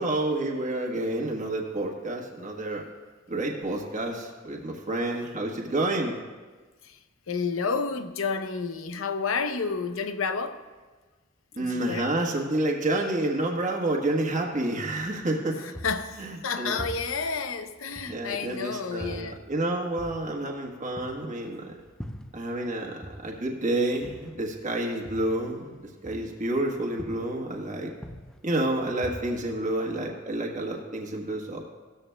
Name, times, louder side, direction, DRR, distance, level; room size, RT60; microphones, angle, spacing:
voice 1, 0.0-2.8 3.3-6.2 11.6-15.6 16.2-16.8 18.1-21.8 22.3-25.7 26.0-27.9 28.4-31.6, right 1 dB, 40° right, 1.3 m, -29 dB
voice 2, 7.3-10.6 11.5-12.1 15.5-19.4, left 5 dB, 90° left, 0.7 m, -30 dB
sound 1, 15.7-18.6 19.0-22.7 23.0-26.7 27.0-27.6 27.9-30.2, equal, 5° left, 0.5 m, -43 dB
17.0 x 13.5 x 2.3 m
head